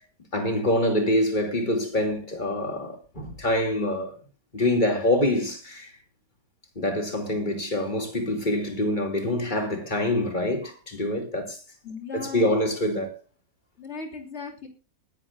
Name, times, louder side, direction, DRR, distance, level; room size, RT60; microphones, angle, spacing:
voice 1, 0.3-4.2 4.5-5.9 6.7-11.6 12.1-13.2, left 1 dB, 35° left, 2.8 m, -25 dB
voice 2, 11.8-12.6 13.8-14.7, left 4 dB, 50° left, 3.2 m, -37 dB
20.0 x 11.5 x 2.5 m
omnidirectional pair, 1.4 m